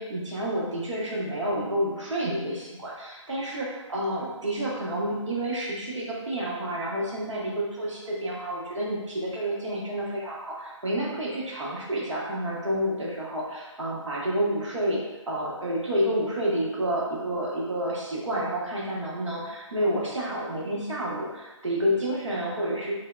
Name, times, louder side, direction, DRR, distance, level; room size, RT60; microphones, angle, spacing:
voice 1, 0.0-15.0 15.3-22.9, equal, 70° right, -5 dB, 0.7 m, -29 dB
2.8 x 2.0 x 2.2 m, 1.1 s
hypercardioid pair, 175°, 16 cm